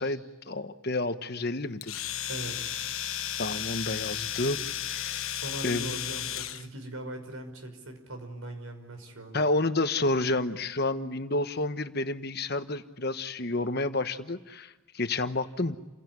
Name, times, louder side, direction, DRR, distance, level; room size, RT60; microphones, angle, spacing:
voice 1, 0.0-1.9 3.4-5.4 5.6-6.0 9.3-15.8, left 2 dB, 50° left, 10 dB, 1.2 m, -30 dB
Domestic sounds home sounds, 1.8-6.7, left 10 dB, 80° left, 1.3 m, -34 dB
voice 2, 2.3-2.7 5.1-9.4, right 1 dB, 85° right, 6 dB, 5.8 m, -40 dB
30.0 x 17.0 x 9.6 m, 1.2 s
head